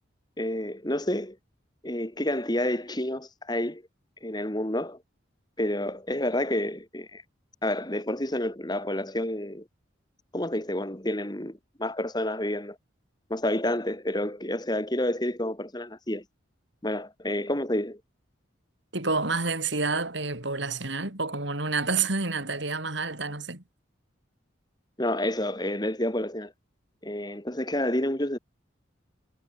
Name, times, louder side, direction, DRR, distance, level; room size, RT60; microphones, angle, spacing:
voice 1, 0.4-1.4 1.8-3.8 4.2-5.0 5.6-7.2 7.6-9.6 10.3-12.8 13.3-16.2 16.8-18.0 25.0-26.5 27.0-28.4, left 1 dB, 20° left, 2.7 m, -29 dB
voice 2, 18.9-23.6, right 4 dB, 65° right, 4.1 m, -29 dB
head